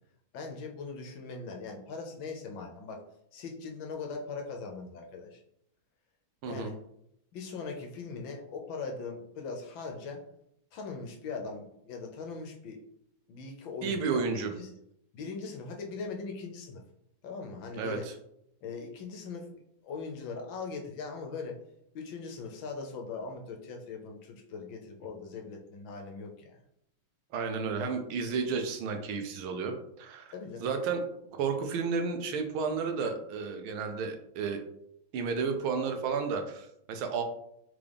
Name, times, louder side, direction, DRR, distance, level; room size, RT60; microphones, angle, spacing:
voice 1, 0.3-3.0 3.3-5.4 6.5-6.8 7.3-10.2 10.7-12.8 13.3-14.7 15.1-16.8 17.2-18.1 18.6-19.5 19.8-21.6 21.9-26.6 30.3-30.7, left 4 dB, 75° left, 2 dB, 1.3 m, -40 dB
voice 2, 13.8-14.5 17.8-18.0 27.3-30.3 30.6-34.6 35.1-37.2, right 5 dB, 75° right, 5 dB, 1.4 m, -32 dB
3.8 x 3.7 x 3.4 m, 0.75 s
omnidirectional pair, 2.3 m